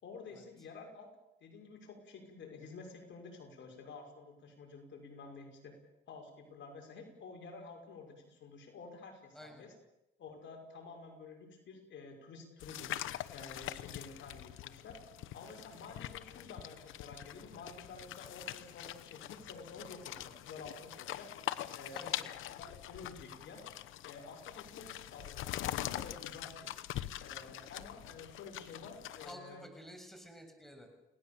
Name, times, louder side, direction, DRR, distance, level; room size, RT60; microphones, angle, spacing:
voice 1, 0.0-1.1 1.4-5.7 6.1-9.7 10.2-12.9 13.3-15.0 15.3-21.3 21.7-23.6 24.0-26.7 27.2-29.6, left 4 dB, 70° left, 3 dB, 6.2 m, -50 dB
voice 2, 9.3-9.7 21.9-22.3 29.2-30.9, equal, ahead, 4 dB, 7.1 m, -51 dB
sound 1, 12.6-29.3, left 13 dB, 85° left, 1.0 m, -43 dB
29.5 x 18.5 x 7.2 m, 0.89 s
cardioid pair, 90°, 20 cm